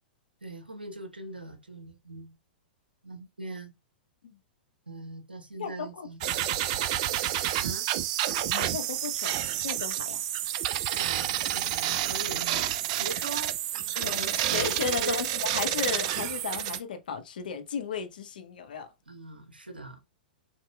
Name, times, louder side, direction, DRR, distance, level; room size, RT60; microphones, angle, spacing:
voice 1, 0.4-2.4 3.0-3.8 4.9-6.2 7.6-7.9 10.8-12.7 12.9-15.2 19.1-20.0, right 2 dB, 90° right, 0.8 m, -41 dB
voice 2, 5.6-6.4 6.7-7.0 8.5-10.2 13.9-18.9, left 6 dB, 65° left, 0.7 m, -35 dB
sound 1, 6.2-16.8, right 12 dB, 45° right, 0.4 m, -29 dB
3.6 x 2.8 x 2.2 m
figure-of-eight pair, 105°, 5 cm